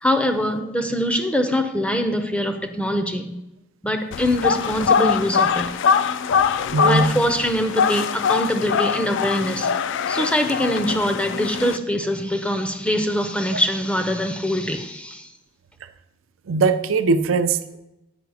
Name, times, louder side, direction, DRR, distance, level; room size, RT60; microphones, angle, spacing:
voice 1, 0.0-3.3 3.8-5.7 6.8-9.7 10.1-15.3, equal, 5° left, 6 dB, 0.5 m, -23 dB
sound 1, 4.1-11.8, left 6 dB, 65° left, 0.3 m, -22 dB
voice 2, 6.7-7.2 16.5-17.8, right 4 dB, 80° right, 11 dB, 0.5 m, -20 dB
9.3 x 4.8 x 4.8 m, 0.94 s
head